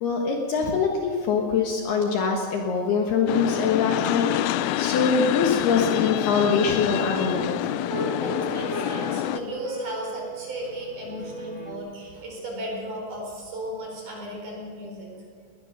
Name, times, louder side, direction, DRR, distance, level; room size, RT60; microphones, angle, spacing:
voice 1, 0.0-7.6, left 5 dB, 65° left, 1 dB, 3.0 m, -24 dB
sound 1, 3.3-9.4, left 13 dB, 85° left, 3.2 m, -27 dB
sound 2, 6.7-11.8, right 4 dB, 40° left, 0.9 m, -37 dB
voice 2, 8.2-15.1, equal, 40° right, -1 dB, 5.9 m, -35 dB
20.5 x 19.5 x 6.6 m, 2.1 s
omnidirectional pair, 5.6 m